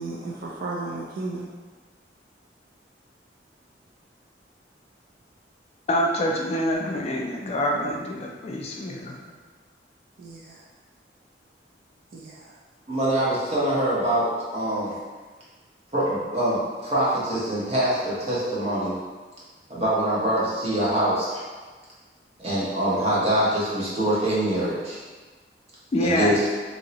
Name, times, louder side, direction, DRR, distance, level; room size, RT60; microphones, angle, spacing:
voice 1, 0.0-1.5 10.2-10.6 12.1-12.6, right 2 dB, 50° right, -3 dB, 0.3 m, -34 dB
voice 2, 5.9-9.2 25.9-26.3, left 1 dB, 35° left, 0 dB, 0.3 m, -26 dB
voice 3, 12.9-14.3 14.5-14.9 15.9-18.9 19.7-21.4 22.4-25.0 26.0-26.3, right 1 dB, 35° right, -8 dB, 0.9 m, -24 dB
3.0 x 2.7 x 2.8 m, 1.4 s
head